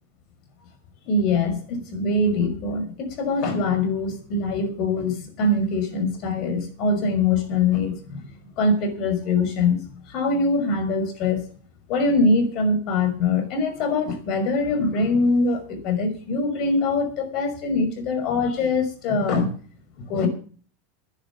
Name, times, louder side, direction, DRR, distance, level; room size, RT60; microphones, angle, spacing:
voice 1, 1.1-8.3 8.6-11.5 11.9-19.5 20.0-20.3, left 3 dB, 50° left, 5.4 m, -23 dB
11.0 x 10.5 x 7.3 m
hypercardioid pair, 95°, 0 cm